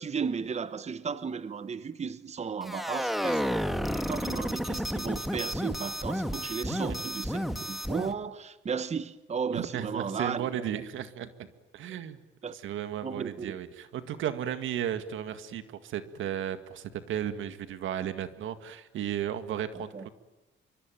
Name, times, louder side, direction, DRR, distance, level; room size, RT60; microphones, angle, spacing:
voice 1, 0.0-3.5 3.9-10.6 12.4-12.5 13.0-13.5 19.9-20.1, right 6 dB, 35° right, 1.0 m, -34 dB
sound 1, 2.6-8.1, equal, ahead, 2.0 m, -31 dB
voice 2, 6.7-7.0 9.5-11.3 11.7-12.2 12.5-20.1, right 10 dB, 80° right, 1.9 m, -34 dB
25.0 x 24.0 x 9.2 m
cardioid pair, 90°, 20 cm